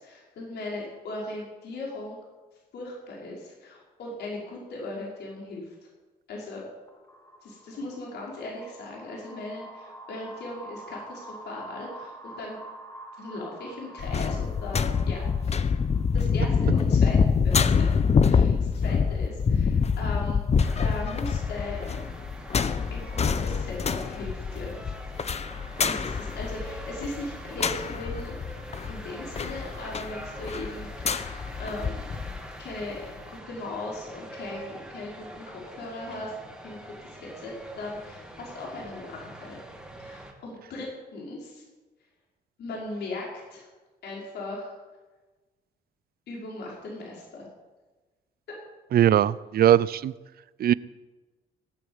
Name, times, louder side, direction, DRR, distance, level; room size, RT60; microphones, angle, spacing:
voice 1, 0.0-2.2 2.7-5.7 6.3-6.6 7.4-12.6 13.2-15.8 16.1-20.4 20.8-21.9 22.9-24.7 25.8-28.4 28.9-32.1 32.6-36.3 36.6-39.6 40.0-41.6 42.6-43.7 44.0-44.8 46.3-47.5, left 2 dB, 70° left, -3 dB, 5.7 m, -38 dB
sound 1, 6.9-16.3, right 1 dB, 20° left, 3.3 m, -46 dB
sound 2, 14.0-32.4 32.8-32.9, left 6 dB, 35° left, 0.9 m, -26 dB
sound 3, 20.6-40.3, right 1 dB, 5° right, 2.9 m, -44 dB
voice 2, 48.9-50.1 50.6-50.7, right 11 dB, 60° right, 20 dB, 0.6 m, -20 dB
18.5 x 9.3 x 8.1 m, 1.2 s
cardioid pair, 95°, 18 cm